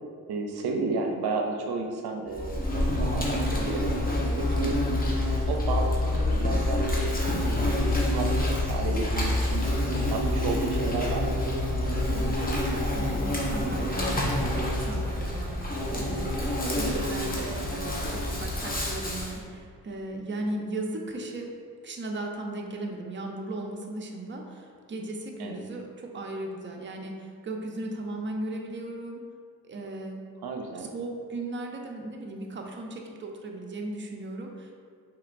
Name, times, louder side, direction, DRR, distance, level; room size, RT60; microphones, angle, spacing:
voice 1, 0.3-3.9 4.4-4.8 5.5-7.1 7.4-8.3 8.6-9.7 10.1-11.4 25.4-25.6 30.4-30.9, right 3 dB, 80° right, 2 dB, 0.6 m, -32 dB
Insect, 2.3-19.4, left 1 dB, 25° left, 1.0 m, -27 dB
voice 2, 11.7-12.4 12.9-16.4 16.7-21.5 21.8-29.2 29.6-30.2 30.8-34.7, right 2 dB, 30° right, 1 dB, 0.7 m, -36 dB
5.7 x 3.4 x 2.6 m, 2.2 s
cardioid pair, 60°, 38 cm